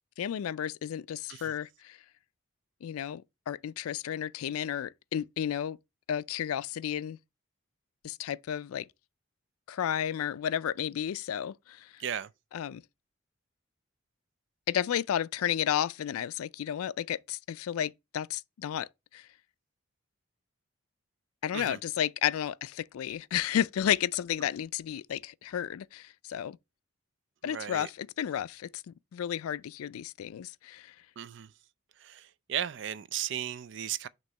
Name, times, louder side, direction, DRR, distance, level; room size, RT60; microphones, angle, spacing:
voice 1, 0.2-2.0 2.8-5.8 6.1-7.2 8.0-8.9 9.7-12.0 12.5-12.8 14.7-18.9 19.1-19.3 21.4-26.6 27.4-30.9, left 10 dB, 85° left, 0.3 m, -32 dB
voice 2, 12.0-12.3 21.5-21.8 27.4-27.9 31.2-31.5 32.0-34.1, right 9 dB, 55° right, 0.4 m, -36 dB
6.2 x 3.0 x 5.4 m
head